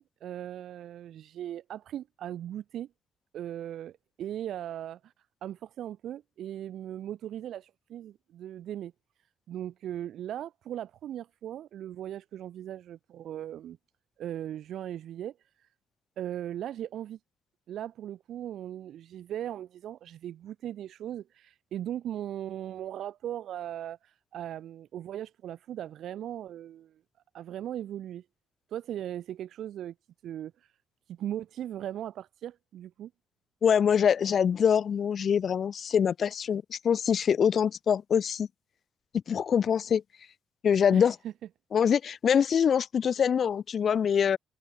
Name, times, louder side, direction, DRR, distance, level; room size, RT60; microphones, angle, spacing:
voice 1, 0.0-2.9 3.3-5.1 5.4-8.9 9.5-13.8 14.2-15.7 16.2-17.2 17.7-27.0 27.3-28.2 28.7-29.9 30.2-30.7 31.1-33.1 40.9-41.3, right 11 dB, 75° right, 0.7 m, -38 dB
voice 2, 33.6-38.5 39.3-40.0 40.6-41.2 41.7-44.4, left 7 dB, 55° left, 0.6 m, -24 dB
cardioid pair, 90°, 0 cm